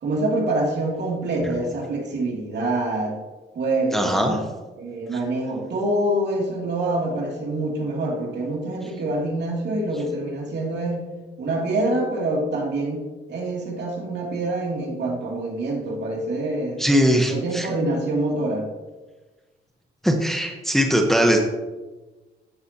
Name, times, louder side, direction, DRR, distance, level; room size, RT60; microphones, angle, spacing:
voice 1, 0.0-3.2 3.5-4.4 4.8-11.1 11.4-16.8 17.3-18.7, right 2 dB, 60° right, -2 dB, 2.7 m, -26 dB
voice 2, 3.9-4.4 5.1-5.2 16.8-17.7 20.0-21.4, equal, ahead, 2 dB, 1.1 m, -20 dB
14.5 x 6.8 x 2.9 m, 1.2 s
cardioid pair, 90°, 20 cm